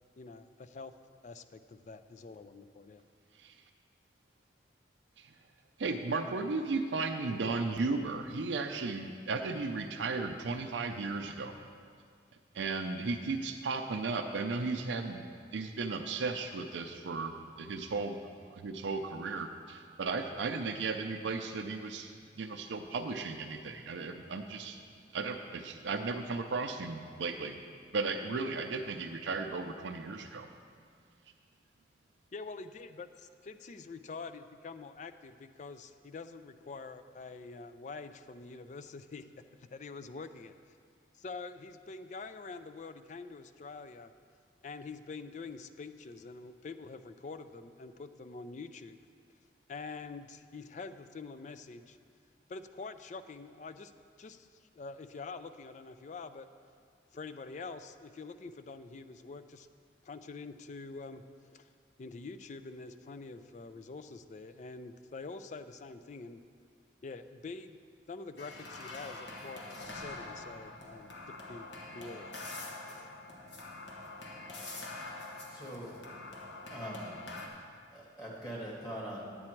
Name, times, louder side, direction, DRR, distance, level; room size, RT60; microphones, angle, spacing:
voice 1, 0.2-0.9 1.2-3.0 32.3-39.3 39.5-40.5 41.1-44.1 44.6-49.0 49.7-52.0 52.5-53.9 54.2-54.5 54.7-56.5 57.1-59.7 60.0-61.7 62.0-66.4 67.0-67.8 68.1-71.1 71.5-71.7 71.9-72.3 72.9-73.1, left 4 dB, 40° left, 11 dB, 0.3 m, -46 dB
voice 2, 5.8-11.6 12.5-18.2 18.5-24.8 25.1-27.6 27.9-30.5, right 3 dB, 80° right, 4 dB, 0.5 m, -35 dB
sound 1, 68.4-77.5, left 2 dB, 75° left, 1.2 m, -45 dB
voice 3, 74.9-76.0 76.7-77.1 77.9-79.2, equal, 20° left, -4 dB, 1.8 m, -43 dB
9.7 x 8.5 x 4.5 m, 2.2 s
head